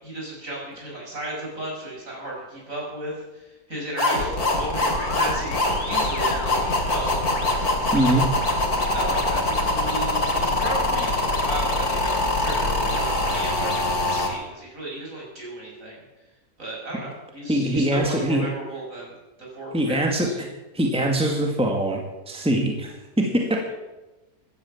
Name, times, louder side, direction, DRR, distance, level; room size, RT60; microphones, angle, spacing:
voice 1, 0.0-7.2 7.9-8.2 8.9-16.0 16.6-20.4, right 1 dB, 60° right, -3 dB, 7.0 m, -35 dB
sound 1, 4.0-14.3, left 2 dB, 90° left, 3.4 m, -23 dB
voice 2, 7.9-8.3 17.5-18.5 19.7-20.5 20.7-22.0 22.3-23.7, right 1 dB, 5° right, 1 dB, 2.1 m, -23 dB
15.5 x 12.5 x 7.3 m, 1.1 s
omnidirectional pair, 1.6 m